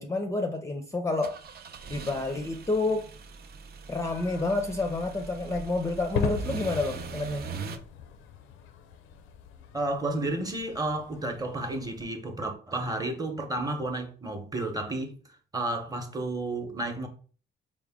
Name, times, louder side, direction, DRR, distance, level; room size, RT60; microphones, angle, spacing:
voice 1, 0.0-1.4 1.9-3.1 3.9-7.4, left 2 dB, 15° left, 0.5 m, -29 dB
sound 1, 1.2-7.8, right 6 dB, 55° right, 0.5 m, -41 dB
sound 2, 4.1-12.1, left 7 dB, 90° left, 0.5 m, -39 dB
voice 2, 9.7-15.2 15.5-17.1, right 2 dB, 20° right, 0.8 m, -31 dB
4.8 x 2.1 x 3.5 m
cardioid pair, 90°, 20 cm